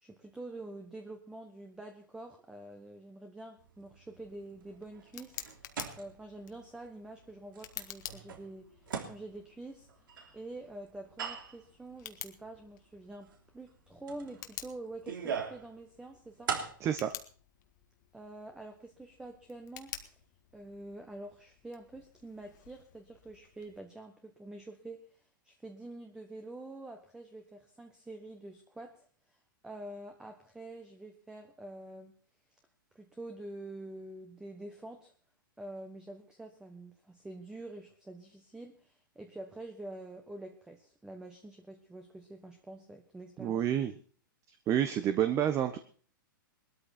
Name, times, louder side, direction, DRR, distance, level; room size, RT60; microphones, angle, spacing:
voice 1, 0.0-5.4 6.0-9.9 10.3-16.5 18.1-20.2 20.5-32.1 32.9-35.1 35.6-43.6, right 2 dB, 5° right, 5 dB, 1.4 m, -47 dB
sound 1, 3.6-6.7 7.1-7.2 7.5-10.4 10.9-11.7 12.2-12.3 13.2-13.4 13.7-13.8 14.1-15.7 16.0-16.7, right 6 dB, 80° right, 3.2 m, -40 dB
Tick, 4.1-23.8, left 12 dB, 60° left, 1.9 m, -51 dB
voice 2, 16.8-17.1 43.4-43.9 44.7-45.8, right 10 dB, 25° right, 10 dB, 1.1 m, -29 dB
19.5 x 13.0 x 4.4 m, 0.43 s
hypercardioid pair, 135°, 11 cm